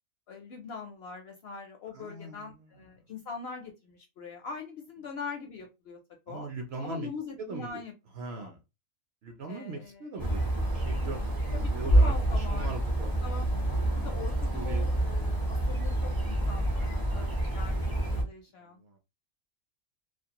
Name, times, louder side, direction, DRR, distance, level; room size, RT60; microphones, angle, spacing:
voice 1, 0.3-6.0 6.3-6.5 6.8-7.9 8.3-8.5 9.5-10.0 11.5-12.7 13.0-13.5 13.9-19.0, left 5 dB, 65° left, 2 dB, 0.6 m, -42 dB
voice 2, 1.9-2.7 6.3-7.1 7.4-7.8 8.1-8.6 9.2-13.1 13.9-14.1 14.5-14.9 16.7-17.4 18.6-19.0, right 3 dB, 65° right, 4 dB, 0.7 m, -41 dB
sound 1, 10.2-18.2, right 1 dB, 30° right, 0.4 m, -27 dB
2.4 x 2.2 x 2.8 m, 0.25 s
omnidirectional pair, 1.4 m